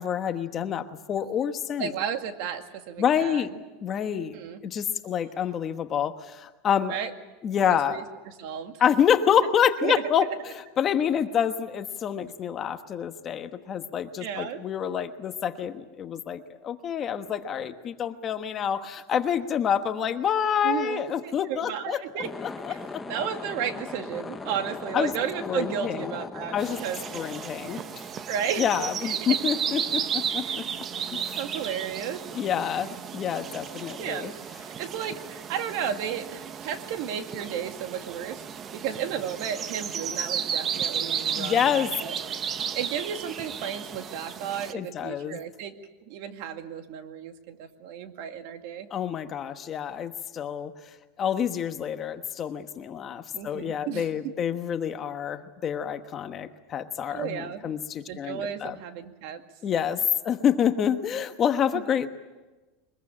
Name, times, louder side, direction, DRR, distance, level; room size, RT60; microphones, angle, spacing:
voice 1, 0.0-1.9 3.0-3.5 3.8-4.4 4.6-7.0 7.4-8.0 8.8-10.3 10.8-23.0 24.9-25.1 25.5-26.1 26.5-26.8 27.1-28.1 28.6-30.7 31.1-31.4 32.3-34.3 41.3-41.9 44.7-45.4 48.9-50.7 51.2-58.8 59.6-62.1, left 8 dB, 25° left, 8 dB, 1.1 m, -27 dB
voice 2, 1.8-3.6 4.3-4.6 6.9-7.1 7.6-8.8 9.8-10.0 14.2-14.6 20.6-22.3 22.7-22.8 23.1-27.3 28.3-29.4 30.4-30.6 31.4-32.2 34.0-34.3 34.6-38.5 38.7-41.6 42.0-42.1 42.4-45.8 46.1-48.9 53.3-54.3 57.0-57.7 58.1-59.4 61.7-61.8, right 8 dB, 60° right, 7 dB, 2.1 m, -33 dB
sound 1, 22.1-28.6, left 3 dB, 10° left, 1.0 m, -39 dB
sound 2, 26.6-44.7, right 7 dB, 25° right, 0.9 m, -33 dB
23.5 x 21.5 x 8.7 m, 1.2 s
supercardioid pair, 155°, 0 cm